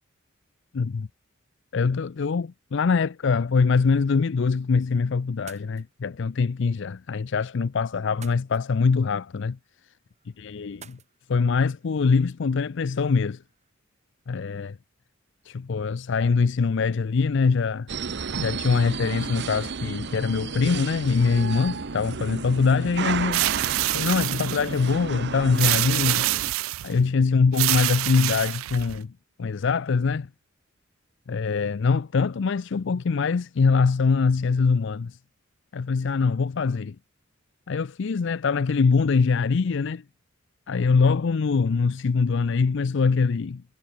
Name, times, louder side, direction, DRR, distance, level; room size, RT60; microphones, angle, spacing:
voice 1, 0.7-1.1 1.7-9.6 10.4-11.0 11.3-13.4 14.3-14.8 15.5-17.9 18.4-23.5 23.9-26.3 26.8-29.1 29.4-30.3 31.3-35.2 35.7-37.0 37.7-40.0 40.7-43.6, left 5 dB, 60° left, 0.5 m, -23 dB
sound 1, 5.3-13.7, right 6 dB, 35° right, 3.8 m, -55 dB
sound 2, 17.9-26.5, right 5 dB, 55° right, 0.8 m, -32 dB
sound 3, 23.3-24.8 25.6-26.9 27.5-29.0, right 18 dB, 75° right, 0.3 m, -26 dB
head